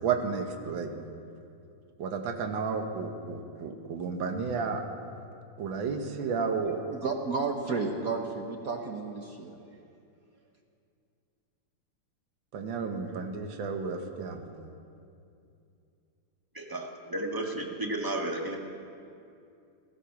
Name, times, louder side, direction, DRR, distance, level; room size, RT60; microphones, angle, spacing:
voice 1, 0.0-0.9 2.0-4.8 5.6-6.8 12.5-14.4, right 5 dB, 70° right, 4 dB, 1.9 m, -32 dB
voice 2, 6.9-9.6, right 4 dB, 50° right, 3 dB, 1.3 m, -32 dB
voice 3, 16.5-18.6, right 1 dB, 10° right, 0 dB, 1.3 m, -33 dB
16.0 x 14.5 x 5.9 m, 2.6 s
omnidirectional pair, 2.2 m